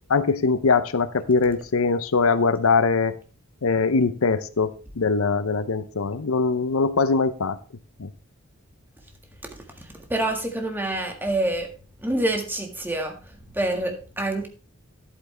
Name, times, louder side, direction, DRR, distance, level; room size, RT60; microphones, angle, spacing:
voice 1, 0.1-3.1 3.6-7.6 8.0-8.1, left 4 dB, 85° left, 13 dB, 0.6 m, -22 dB
voice 2, 9.8-11.7 12.0-13.1 13.5-14.5, right 1 dB, 10° right, 3 dB, 1.7 m, -26 dB
11.0 x 8.5 x 3.3 m, 0.37 s
head